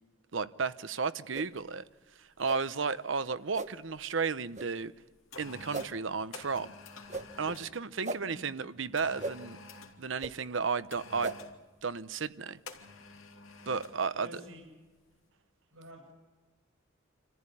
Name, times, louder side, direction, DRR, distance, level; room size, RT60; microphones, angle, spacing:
voice 1, 0.3-1.9 2.2-4.9 5.4-6.7 7.4-9.6 10.0-11.3 11.8-12.6 13.7-14.3, right 5 dB, 65° right, 0.8 m, -33 dB
sound 1, 1.3-1.5 2.4-2.6 3.5-3.7 4.5-4.7 5.7-5.9 7.1-7.3 8.0-8.2 9.2-9.3 10.2-10.3 11.2-11.4, right 3 dB, 35° right, 1.0 m, -36 dB
sound 2, 1.6-1.7 2.4-2.7 2.9-4.1 4.8-7.7 9.0-10.0 10.9-11.6 12.7-14.0 14.3-14.5, left 3 dB, 85° left, 2.7 m, -49 dB
voice 2, 8.0-8.4 14.1-14.7 15.7-16.2, equal, 90° right, 6.9 m, -49 dB
27.0 x 14.5 x 9.8 m
head